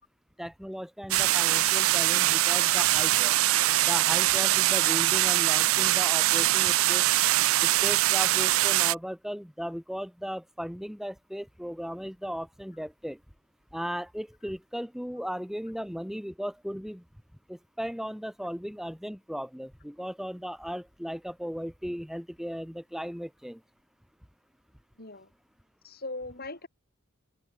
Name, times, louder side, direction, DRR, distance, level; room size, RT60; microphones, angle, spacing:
voice 1, 0.4-3.3 3.8-7.1 7.6-13.2 13.7-17.0 17.5-23.6, equal, ahead, 2.9 m, -36 dB
sound 1, 1.1-8.9, right 16 dB, 65° right, 0.4 m, -23 dB
voice 2, 25.0-25.3 25.8-26.7, left 2 dB, 45° left, 6.7 m, -39 dB
open air
head